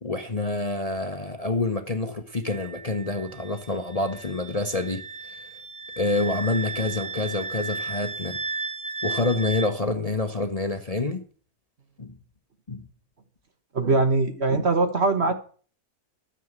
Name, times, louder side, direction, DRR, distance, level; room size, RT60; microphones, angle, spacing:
voice 1, 0.0-5.4 6.0-8.4 9.0-11.2 12.0-12.1 12.7-12.8, left 2 dB, 30° left, 0.9 m, -27 dB
Wind instrument woodwind instrument, 2.4-9.7, right 3 dB, 20° right, 0.6 m, -35 dB
voice 2, 13.7-15.3, right 3 dB, 45° right, 1.4 m, -22 dB
13.0 x 7.2 x 7.4 m
omnidirectional pair, 1.7 m